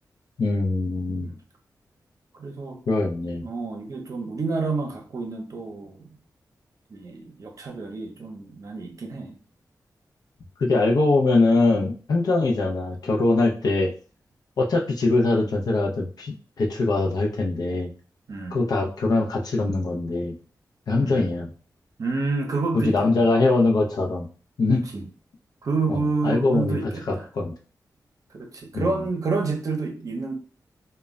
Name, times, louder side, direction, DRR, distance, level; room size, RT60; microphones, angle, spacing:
voice 1, 0.4-1.3 2.9-3.5 10.6-13.9 14.6-17.9 18.5-20.3 20.9-21.5 22.7-24.3 24.6-24.8 25.9-26.0 26.2-26.8 27.1-27.5 28.7-29.0, left 2 dB, 70° left, 1 dB, 0.5 m, -22 dB
voice 2, 2.3-2.8 3.4-6.1 6.9-9.4 18.3-18.6 21.0-21.3 22.0-23.3 24.7-25.1 25.6-27.3 28.3-30.3, right 3 dB, 55° right, 2 dB, 0.6 m, -29 dB
2.2 x 2.0 x 3.5 m, 0.40 s
wide cardioid pair, 85°, 7 cm